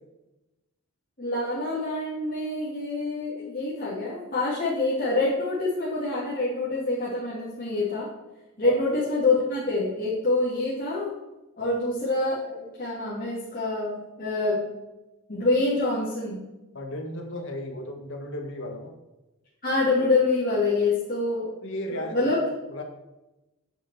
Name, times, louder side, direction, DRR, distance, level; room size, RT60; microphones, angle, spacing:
voice 1, 1.2-8.1 8.6-11.1 11.6-14.6 15.3-16.4 19.6-21.5 21.9-22.4, left 2 dB, 40° left, -11 dB, 2.9 m, -26 dB
voice 2, 16.7-18.9 21.6-22.3 22.7-22.8, left 1 dB, 60° left, 2 dB, 1.7 m, -35 dB
10.0 x 7.1 x 4.7 m, 1.0 s
head